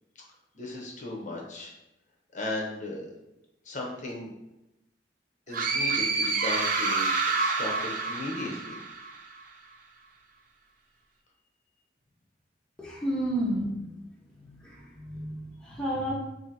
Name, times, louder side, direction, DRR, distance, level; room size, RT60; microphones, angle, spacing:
voice 1, 0.5-1.7 2.3-3.1 3.7-4.3 5.5-8.8, left 2 dB, 45° left, -1 dB, 0.7 m, -36 dB
sound 1, 5.5-9.2, right 4 dB, 55° right, 0.4 m, -28 dB
voice 2, 12.8-13.9 14.4-16.1, right 1 dB, 5° left, -5 dB, 0.6 m, -31 dB
2.7 x 2.6 x 3.9 m, 0.92 s
head